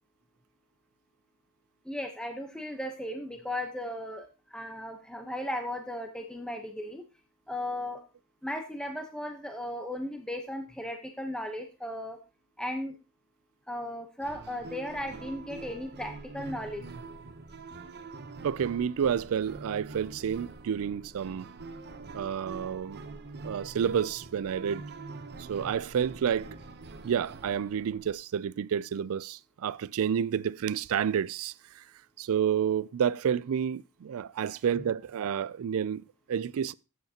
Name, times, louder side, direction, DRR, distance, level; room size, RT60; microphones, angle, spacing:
voice 1, 1.9-7.0 7.5-8.0 8.4-12.2 12.6-13.0 13.7-16.8, left 1 dB, 5° left, 0.9 m, -36 dB
sound 1, 14.2-28.1, right 3 dB, 50° right, 0.8 m, -45 dB
voice 2, 18.4-21.5 22.1-23.0 23.4-24.8 25.4-26.5 27.0-31.8 32.2-36.7, right 8 dB, 65° right, 0.4 m, -30 dB
13.0 x 8.1 x 2.8 m
head